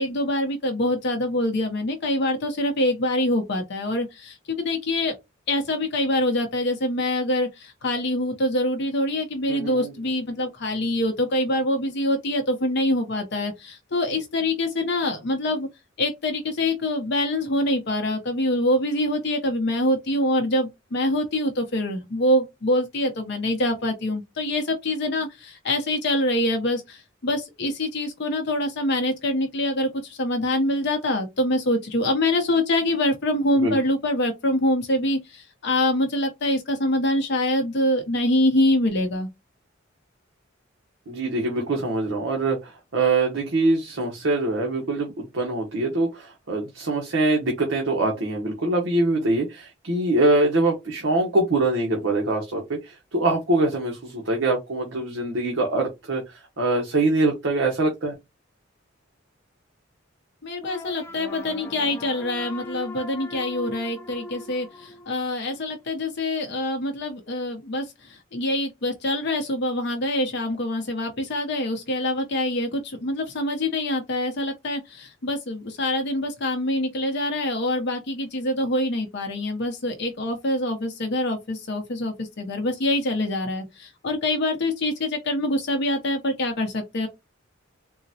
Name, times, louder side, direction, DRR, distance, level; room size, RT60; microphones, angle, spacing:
voice 1, 0.0-5.1 5.5-15.7 16.0-39.3 60.4-87.1, left 1 dB, 60° left, 0.6 m, -25 dB
voice 2, 9.5-9.9 33.5-33.8 41.1-58.1, right 2 dB, 70° right, 0.8 m, -24 dB
sound 1, 60.6-65.6, left 2 dB, 10° left, 0.4 m, -40 dB
3.8 x 2.1 x 2.7 m
head